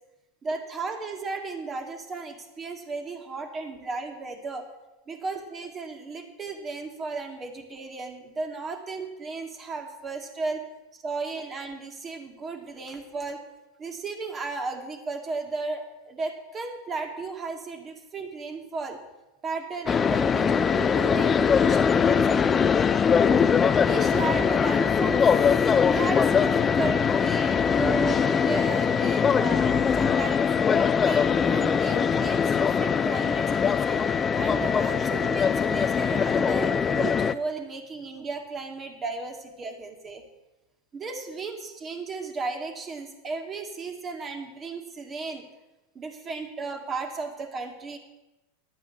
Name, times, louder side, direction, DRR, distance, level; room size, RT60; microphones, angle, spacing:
voice 1, 0.4-4.7 5.1-10.6 10.9-13.4 13.8-19.0 19.4-22.5 23.8-25.3 25.7-30.4 31.0-34.0 34.4-40.2 40.9-45.5 46.0-48.0, right 4 dB, 25° right, 4 dB, 1.9 m, -35 dB
sound 1, 19.9-37.3, left 6 dB, 25° left, 0.4 m, -22 dB
10.5 x 8.3 x 7.1 m, 1.0 s
hypercardioid pair, 105°, 0 cm